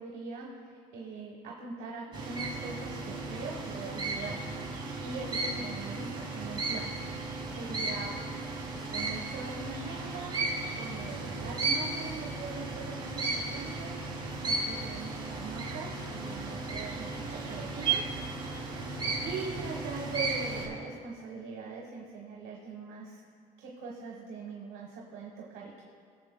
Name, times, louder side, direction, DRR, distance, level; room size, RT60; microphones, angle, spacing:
voice 1, 0.0-6.9 7.2-8.1 8.9-10.4 10.8-18.1 19.2-23.2 23.6-25.8, right 4 dB, 80° right, -1 dB, 1.1 m, -42 dB
sound 1, 2.1-20.7, right 3 dB, 25° right, 2.1 m, -35 dB
20.0 x 6.8 x 2.2 m, 2.2 s
cardioid pair, 110°, 17 cm